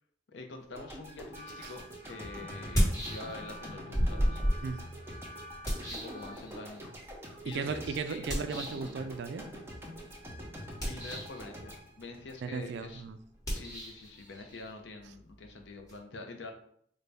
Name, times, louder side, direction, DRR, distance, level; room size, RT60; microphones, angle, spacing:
voice 1, 0.3-4.4 5.9-6.8 7.4-8.4 10.9-11.7 12.0-13.0 13.5-16.5, left 3 dB, 75° left, 4 dB, 0.6 m, -46 dB
sound 1, 0.7-13.0, equal, 15° right, 0.6 m, -46 dB
sound 2, 1.3-6.3, left 1 dB, 45° right, 0.8 m, -50 dB
sound 3, 1.6-1.7 2.5-3.6 3.9-6.8 8.3-8.9 10.7-11.4 13.4-16.0, equal, 20° left, 1.1 m, -33 dB
voice 2, 7.5-9.5 12.4-13.2, right 5 dB, 65° right, 9 dB, 0.3 m, -36 dB
3.9 x 2.2 x 3.3 m, 0.66 s
head